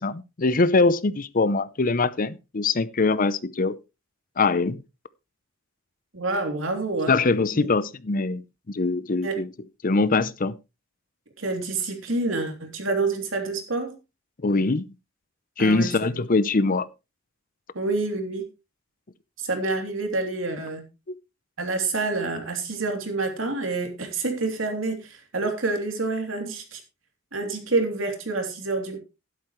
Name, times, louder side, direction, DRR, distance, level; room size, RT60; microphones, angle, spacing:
voice 1, 0.0-3.8 4.4-4.8 7.1-9.5 9.8-10.5 14.4-14.8 15.6-16.9 21.1-21.2, left 3 dB, 45° left, 0.7 m, -23 dB
voice 2, 6.1-7.1 7.6-7.7 9.2-9.4 11.4-14.0 15.6-16.1 17.7-18.4 19.4-20.8 21.6-26.8 27.3-29.0, right 3 dB, 75° right, 3.2 m, -27 dB
12.0 x 11.5 x 3.2 m
head